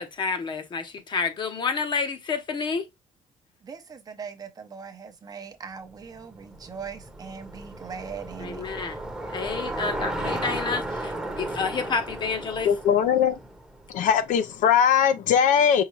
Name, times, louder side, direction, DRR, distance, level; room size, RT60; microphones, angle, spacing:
voice 1, 0.0-2.8 8.4-9.0 9.3-12.7, left 5 dB, 35° left, 0.9 m, -29 dB
voice 2, 3.6-8.6, right 6 dB, 30° right, 0.7 m, -40 dB
Bicycle, 6.0-14.3, right 1 dB, 5° right, 0.9 m, -35 dB
voice 3, 12.6-13.4 13.9-15.8, left 8 dB, 70° left, 0.6 m, -20 dB
5.6 x 2.3 x 3.1 m
cardioid pair, 145°, 14 cm